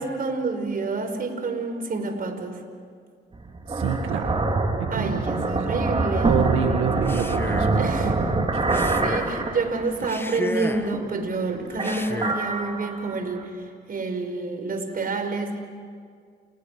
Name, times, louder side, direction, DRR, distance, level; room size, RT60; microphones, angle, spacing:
voice 1, 0.0-2.6 4.9-6.4 7.8-8.1 8.7-15.6, right 3 dB, 45° right, 6 dB, 4.7 m, -28 dB
sound 1, 3.3-10.2 10.6-11.4 11.7-13.4, right 2 dB, 30° right, 4.0 m, -25 dB
voice 2, 3.7-4.4 4.9-5.4 6.2-8.6, right 8 dB, 90° right, 4 dB, 1.9 m, -27 dB
Male speech man speaking, 6.9-7.8 8.6-9.4 10.0-11.0 11.7-12.5, left 2 dB, 10° left, 1.4 m, -33 dB
30.0 x 29.5 x 6.5 m, 2.1 s
cardioid pair, 90°, 20 cm